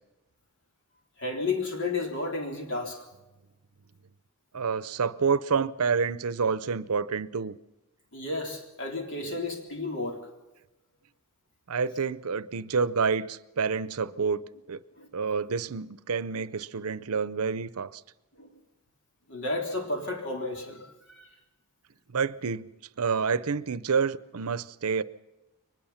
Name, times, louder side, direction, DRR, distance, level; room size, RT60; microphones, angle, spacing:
voice 1, 1.2-3.0 8.1-10.3 15.0-15.1 18.4-18.5 19.3-21.3, left 3 dB, 55° left, 3.7 m, -32 dB
voice 2, 4.5-7.6 11.7-14.4 14.7-14.8 15.1-18.0 22.1-22.7 23.0-25.0, right 5 dB, 85° right, 0.7 m, -28 dB
23.0 x 20.5 x 5.8 m
head